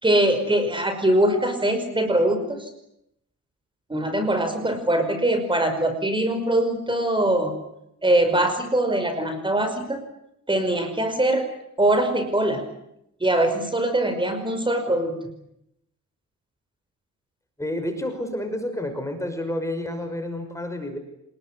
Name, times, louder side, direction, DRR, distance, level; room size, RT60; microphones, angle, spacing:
voice 1, 0.0-2.7 3.9-7.5 8.0-10.0 10.5-11.5 11.8-12.6 13.2-15.2, right 1 dB, 15° right, 8 dB, 5.5 m, -22 dB
voice 2, 17.6-21.0, left 1 dB, 10° left, 6 dB, 5.9 m, -29 dB
27.0 x 20.5 x 10.0 m, 0.79 s
cardioid pair, 90°, 30 cm